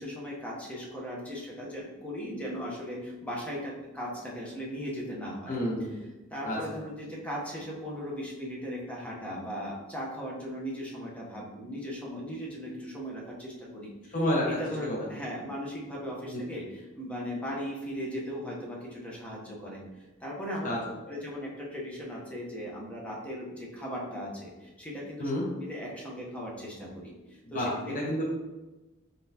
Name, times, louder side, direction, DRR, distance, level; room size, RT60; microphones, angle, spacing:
voice 1, 0.0-5.5 6.3-14.2 14.4-20.7 21.1-25.3 25.6-27.1 27.5-28.0, equal, 5° left, -4 dB, 0.8 m, -38 dB
voice 2, 5.5-5.9 6.4-6.6 14.1-14.5 14.8-15.1 16.2-16.4 20.6-21.2 25.2-25.4 27.5-28.2, equal, 40° left, -3 dB, 0.7 m, -30 dB
3.9 x 3.8 x 2.8 m, 1.1 s
head